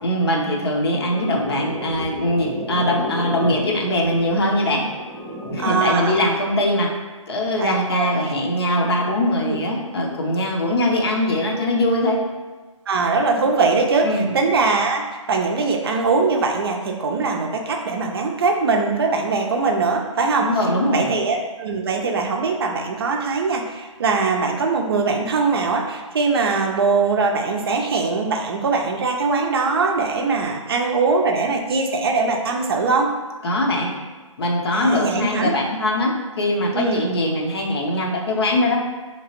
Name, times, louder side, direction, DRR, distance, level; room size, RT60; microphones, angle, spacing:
voice 1, 0.0-4.8 5.5-6.9 7.3-12.2 14.0-14.3 20.4-21.1 33.4-33.9 34.4-38.8, left 1 dB, 45° left, 0 dB, 0.7 m, -21 dB
sound 1, 0.9-5.9, equal, 5° left, 0.5 m, -32 dB
voice 2, 5.6-6.1 7.6-8.1 9.4-9.6 12.9-15.0 15.3-20.5 20.9-33.1 34.7-35.5 36.7-37.0, right 4 dB, 45° right, 2 dB, 0.5 m, -21 dB
4.7 x 2.9 x 2.9 m, 1.3 s
figure-of-eight pair, 150°, 17 cm